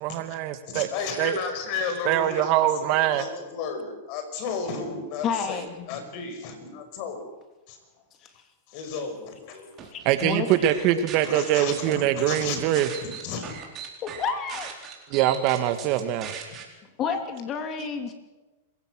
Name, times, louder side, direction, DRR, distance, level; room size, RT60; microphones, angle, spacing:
voice 1, 0.0-0.9 1.2-1.4 2.1-3.2 10.1-12.9 15.1-16.3, right 12 dB, 50° right, 10 dB, 1.8 m, -23 dB
voice 2, 0.7-2.5 2.8-7.3 7.7-7.8 8.7-9.7 10.1-10.2 11.2-13.5, left 5 dB, 50° left, 6 dB, 5.3 m, -34 dB
voice 3, 5.2-5.9 8.2-8.3 9.8-10.7 14.0-14.7 17.0-18.1, left 6 dB, 35° left, 7 dB, 2.8 m, -30 dB
sound 1, 9.8-10.2 10.6-11.9 12.3-16.6, right 8 dB, 35° right, 4.3 m, -39 dB
26.5 x 16.0 x 6.4 m, 1.1 s
hypercardioid pair, 120°, 0 cm